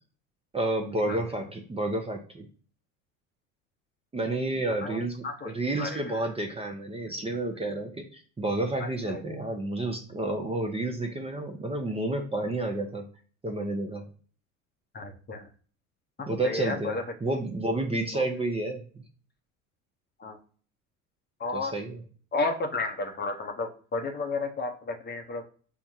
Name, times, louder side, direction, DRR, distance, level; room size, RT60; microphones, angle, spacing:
voice 1, 0.5-2.5 4.1-13.0 13.4-14.1 16.3-19.0 21.5-22.0, right 2 dB, 15° right, 3 dB, 0.7 m, -30 dB
voice 2, 5.2-6.2 8.8-9.2 14.9-15.5 16.2-17.0 18.1-18.2 20.2-20.4 21.4-21.7 22.3-25.4, left 3 dB, 25° left, 5 dB, 0.8 m, -32 dB
5.6 x 2.2 x 2.7 m, 0.42 s
hypercardioid pair, 70°, 42 cm